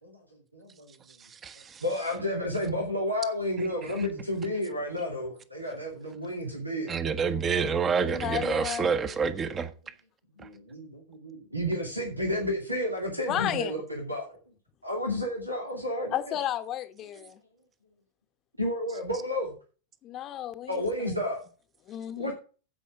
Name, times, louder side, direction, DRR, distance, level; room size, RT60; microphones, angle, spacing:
voice 1, 0.5-0.9 1.8-6.9 10.4-14.4 14.8-16.1 18.6-19.5 20.7-21.4 22.2-22.3, left 1 dB, 85° right, 2.5 m, -31 dB
voice 2, 6.9-9.7, right 6 dB, 20° right, 1.2 m, -27 dB
voice 3, 8.0-9.0 13.3-13.7 16.1-17.4 20.0-21.1 21.9-22.3, left 11 dB, 35° left, 1.0 m, -33 dB
15.0 x 5.5 x 4.9 m
figure-of-eight pair, 90°, 0 cm